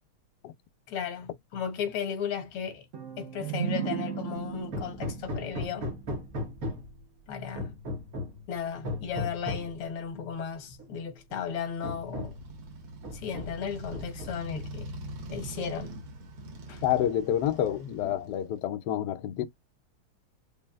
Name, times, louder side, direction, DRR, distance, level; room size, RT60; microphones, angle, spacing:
voice 1, 0.9-2.9 3.2-5.9 7.3-7.8 8.5-12.4 13.1-14.9 15.3-15.9 16.7-16.8, left 7 dB, 85° left, 1.9 m, -35 dB
sound 1, 2.9-6.6, right 9 dB, 70° right, 0.7 m, -36 dB
Hammer, 4.7-7.0 7.6-8.4 8.8-9.8 10.8-10.9 11.3-11.4 11.8-12.5 13.0-13.6 13.9-14.6, left 1 dB, 50° right, 1.2 m, -36 dB
Motorcycle, 11.9-18.6, right 1 dB, 90° right, 2.0 m, -43 dB
voice 2, 16.8-19.5, left 11 dB, 70° left, 1.0 m, -28 dB
5.3 x 2.4 x 2.3 m
omnidirectional pair, 2.3 m